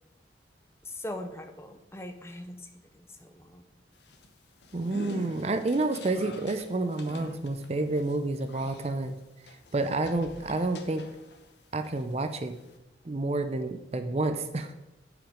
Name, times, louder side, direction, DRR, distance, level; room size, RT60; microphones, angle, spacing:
voice 1, 0.8-3.7, left 1 dB, 15° left, 7 dB, 0.5 m, -41 dB
sound 1, 3.9-11.5 11.8-12.8, left 1 dB, 70° left, 0.8 m, -45 dB
voice 2, 4.7-9.2 9.7-11.0 11.7-12.5 13.0-14.7, right 2 dB, 35° right, 9 dB, 0.5 m, -29 dB
9.1 x 5.1 x 4.9 m, 0.97 s
head